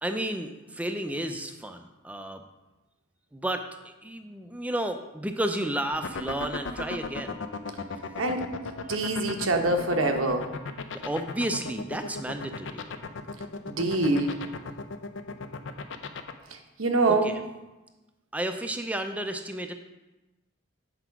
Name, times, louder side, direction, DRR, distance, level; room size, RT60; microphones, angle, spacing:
voice 1, 0.0-2.4 3.3-7.4 11.0-12.9 17.1-17.3 18.3-19.7, right 1 dB, 5° right, 7 dB, 0.5 m, -32 dB
sound 1, 5.9-16.3, left 4 dB, 65° left, 0.6 m, -35 dB
voice 2, 8.9-10.5 13.7-14.4 16.5-17.3, right 2 dB, 85° right, 4 dB, 1.0 m, -25 dB
8.0 x 4.9 x 5.8 m, 1.1 s
head